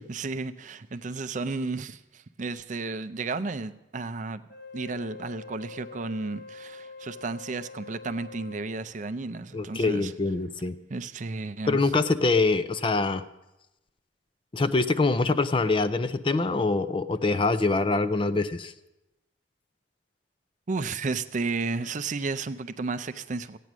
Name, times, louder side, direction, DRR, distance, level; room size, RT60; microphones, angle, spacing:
voice 1, 0.1-4.4 4.7-10.1 10.9-11.9 20.7-23.6, right 3 dB, 40° right, 12 dB, 0.5 m, -33 dB
Wind instrument woodwind instrument, 4.5-8.9, left 4 dB, 55° left, 1.9 m, -44 dB
voice 2, 9.5-10.8 11.7-13.2 14.5-18.7, left 3 dB, 25° left, 11 dB, 0.4 m, -24 dB
15.5 x 9.2 x 6.1 m, 0.96 s
head